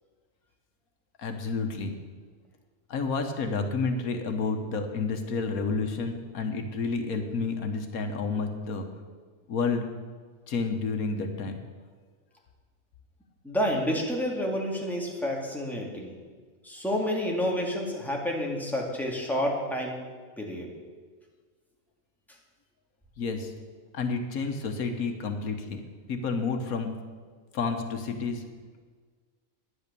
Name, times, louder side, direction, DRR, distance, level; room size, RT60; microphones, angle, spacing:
voice 1, 1.2-1.9 2.9-8.9 9.5-9.8 10.5-11.6 23.2-23.5 23.9-25.8 26.1-26.9 27.5-28.4, left 4 dB, 85° left, 5 dB, 1.6 m, -30 dB
voice 2, 13.4-16.2 16.6-20.0 20.4-20.7, equal, ahead, -1 dB, 2.1 m, -29 dB
11.5 x 9.9 x 6.8 m, 1.5 s
omnidirectional pair, 1.5 m